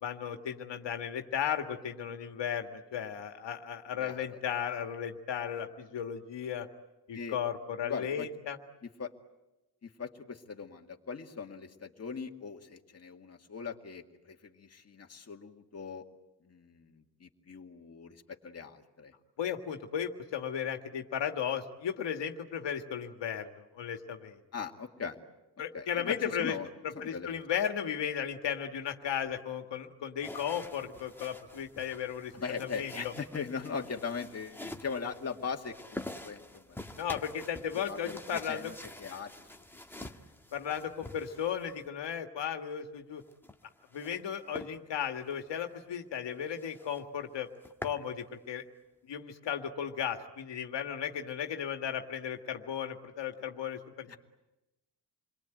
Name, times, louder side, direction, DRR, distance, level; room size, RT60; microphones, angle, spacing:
voice 1, 0.0-6.7 7.1-8.6 19.4-24.4 25.6-26.6 26.8-32.3 32.6-33.1 37.0-38.7 40.5-43.2 43.9-47.5 47.8-48.6 49.1-54.2, left 8 dB, 85° left, 5 dB, 1.9 m, -35 dB
voice 2, 4.0-4.4 7.1-7.4 7.8-8.3 9.0-9.1 9.8-16.0 16.4-19.1 24.5-25.2 25.7-26.7 26.9-27.3 32.3-37.0 37.9-38.7 39.0-39.3 40.0-40.3 54.1-54.2, left 5 dB, 35° left, 2 dB, 2.2 m, -40 dB
sound 1, 30.2-41.9 43.2-44.2 44.5-44.7 45.2-45.4 45.8-45.9 46.2-46.3 46.6-47.0 47.4-48.0, left 1 dB, 5° left, 1.5 m, -47 dB
28.5 x 22.5 x 9.2 m, 0.99 s
wide cardioid pair, 135°, 42 cm